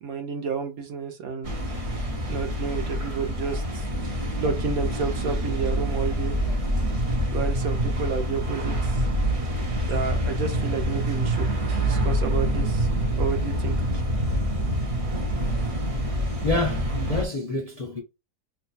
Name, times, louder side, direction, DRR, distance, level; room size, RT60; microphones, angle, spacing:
voice 1, 0.0-1.5 2.3-3.8 4.4-6.4 7.3-9.0 9.9-11.5 11.8-12.9 13.1-13.8 15.0-15.3, right 5 dB, 70° right, 1.2 m, -30 dB
sound 1, 1.4-17.2, equal, 40° right, 0.5 m, -26 dB
voice 2, 16.2-18.0, left 3 dB, 40° left, 0.5 m, -28 dB
2.9 x 2.3 x 4.1 m
omnidirectional pair, 1.6 m